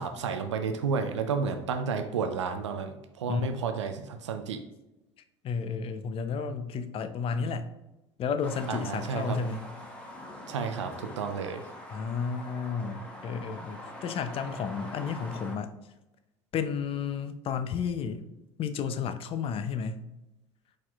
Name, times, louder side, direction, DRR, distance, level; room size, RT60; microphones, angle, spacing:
voice 1, 0.0-4.6 8.7-9.4 10.5-11.6, right 5 dB, 80° right, 7 dB, 0.4 m, -31 dB
voice 2, 5.4-7.7 8.2-9.7 11.9-15.7 16.5-18.2 18.6-20.1, left 6 dB, 40° left, 10 dB, 0.5 m, -32 dB
sound 1, 8.4-15.6, left 1 dB, 5° left, 1.0 m, -44 dB
4.9 x 4.2 x 2.3 m, 0.95 s
figure-of-eight pair, 65°, 15 cm